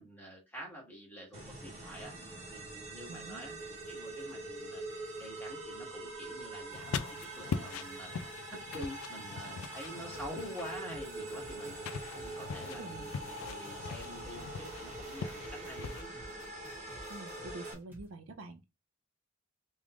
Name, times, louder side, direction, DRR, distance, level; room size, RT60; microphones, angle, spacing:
voice 1, 0.0-2.1 2.5-4.8 5.2-8.1 8.5-11.8 12.1-16.1, equal, 10° left, 1.4 m, -47 dB
sound 1, 1.3-17.7, right 2 dB, 30° right, 1.0 m, -44 dB
voice 2, 3.1-3.5 12.7-13.1 17.1-18.7, right 3 dB, 70° right, 0.5 m, -47 dB
sound 2, 6.7-16.0, left 5 dB, 85° left, 0.4 m, -42 dB
sound 3, 10.1-18.0, equal, 10° right, 1.1 m, -53 dB
3.5 x 3.1 x 2.4 m
head